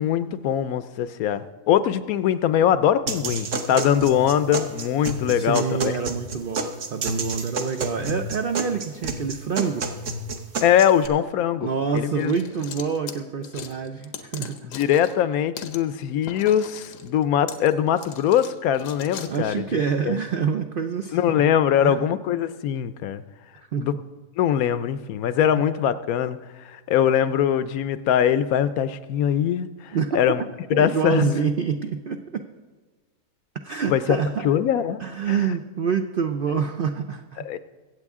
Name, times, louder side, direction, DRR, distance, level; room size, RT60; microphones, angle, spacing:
voice 1, 0.0-5.9 10.6-11.7 11.9-12.3 14.7-19.8 20.1-20.2 21.1-23.2 23.8-23.9 24.4-30.4 30.7-31.3 33.9-34.2 34.4-35.0 37.4-37.6, left 9 dB, 70° left, 13 dB, 1.0 m, -22 dB
sound 1, 3.1-11.1, right 3 dB, 55° right, 1.2 m, -30 dB
voice 2, 5.3-9.8 11.6-14.7 19.3-21.5 21.8-22.1 23.7-24.0 25.5-25.6 29.9-30.2 30.7-32.5 33.6-34.5 35.0-37.5, right 6 dB, 80° right, 7 dB, 0.4 m, -27 dB
sound 2, 12.0-15.2 15.6-15.8 16.2-19.4, left 7 dB, 90° left, 1.4 m, -39 dB
23.5 x 8.1 x 3.6 m, 1.3 s
omnidirectional pair, 1.7 m